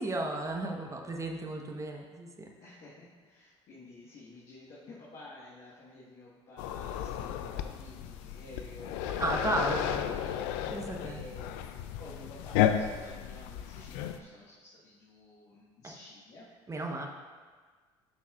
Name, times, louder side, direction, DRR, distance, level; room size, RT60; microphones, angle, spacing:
voice 1, 0.0-2.3 9.1-10.0 10.7-11.2 16.7-17.1, right 2 dB, 20° right, 2 dB, 1.2 m, -33 dB
voice 2, 2.6-11.5 12.0-17.1, left 2 dB, 50° left, -8 dB, 1.7 m, -52 dB
sound 1, 6.6-14.2, left 10 dB, 70° left, 0.5 m, -33 dB
11.5 x 6.0 x 2.5 m, 1.5 s
hypercardioid pair, 60°, 15 cm